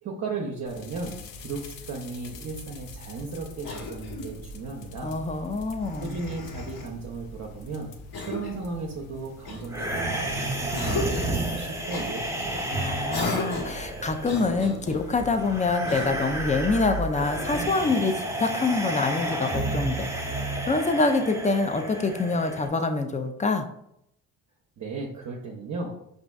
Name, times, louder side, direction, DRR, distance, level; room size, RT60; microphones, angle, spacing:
voice 1, 0.0-5.2 6.0-11.1 11.4-12.7 24.8-26.0, right 3 dB, 40° right, -1 dB, 0.7 m, -36 dB
sound 1, 0.6-17.7, equal, 80° left, 0.6 m, -42 dB
Cough, 3.6-4.4 5.8-6.9 8.1-8.7 9.5-10.3 10.7-11.4 11.9-12.1 13.1-13.8 14.2-15.0 15.8-16.4, left 2 dB, 60° left, 1.3 m, -35 dB
voice 2, 5.0-6.2 12.7-20.3 20.7-23.7, left 3 dB, 20° left, 7 dB, 0.4 m, -26 dB
sound 2, 9.7-22.7, right 1 dB, 5° right, 0.9 m, -31 dB
5.0 x 2.5 x 2.3 m, 0.76 s
hypercardioid pair, 55°, 42 cm